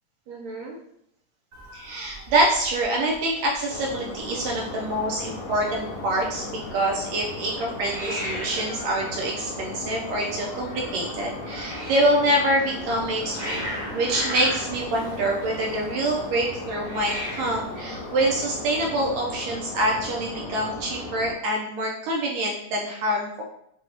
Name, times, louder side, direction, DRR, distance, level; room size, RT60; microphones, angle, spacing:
voice 1, 0.3-0.8 1.7-23.4, right 1 dB, 80° right, -2 dB, 1.7 m, -26 dB
Hiss, 1.5-18.8, equal, 65° right, 0.5 m, -39 dB
sound 1, 3.7-21.3, left 2 dB, 80° left, 1.8 m, -36 dB
6.4 x 2.3 x 2.6 m, 0.74 s
omnidirectional pair, 3.4 m